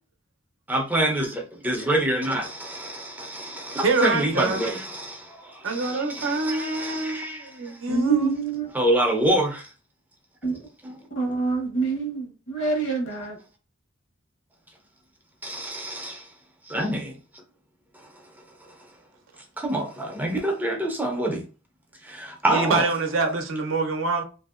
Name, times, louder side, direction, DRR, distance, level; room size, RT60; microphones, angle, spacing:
voice 1, 0.7-7.8 8.7-9.7 10.8-10.9 15.4-16.3 16.6-17.2 17.9-18.1 18.6-18.7 19.6-21.4 22.0-22.9, right 1 dB, 10° right, 0.5 m, -26 dB
voice 2, 3.8-4.6 5.6-8.3 22.5-24.2, right 3 dB, 65° right, 0.6 m, -25 dB
voice 3, 7.9-8.7 10.4-10.7 11.1-13.4, right 4 dB, 65° left, 1.1 m, -26 dB
2.8 x 2.6 x 2.4 m
head